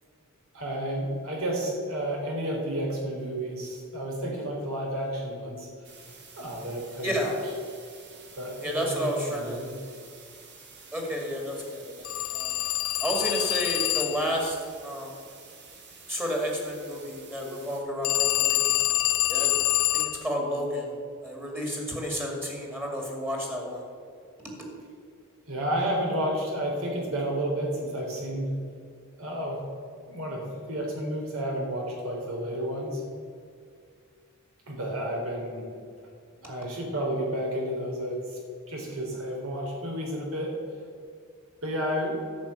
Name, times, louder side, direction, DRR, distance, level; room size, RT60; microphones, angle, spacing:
voice 1, 0.5-5.7 6.4-7.4 8.4-9.7 25.5-28.5 29.2-29.6 30.1-33.0 34.7-35.7 36.4-38.4 38.7-40.5 41.6-42.2, right 1 dB, 70° right, -1 dB, 3.7 m, -31 dB
sound 1, 5.8-17.8, right 4 dB, 55° right, 2.3 m, -50 dB
voice 2, 7.0-7.3 8.6-9.6 10.9-12.5 13.0-14.6 14.8-15.1 16.1-18.8 19.3-19.5 19.9-20.9 21.2-23.8, equal, 10° right, 0 dB, 2.3 m, -31 dB
Telephone, 12.0-14.4 18.0-20.2, left 16 dB, 70° left, 0.4 m, -26 dB
11.5 x 6.3 x 9.0 m, 2.2 s
head